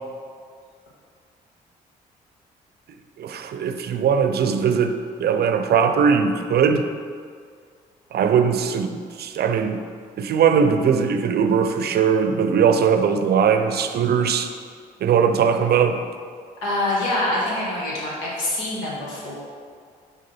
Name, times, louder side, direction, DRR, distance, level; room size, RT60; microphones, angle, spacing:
voice 1, 3.2-6.9 8.1-9.9 10.2-14.5 15.0-16.0, right 6 dB, 55° right, 8 dB, 0.5 m, -20 dB
voice 2, 16.6-19.3, left 1 dB, 85° left, -5 dB, 1.5 m, -25 dB
6.6 x 3.6 x 5.3 m, 2.1 s
hypercardioid pair, 50°, 20 cm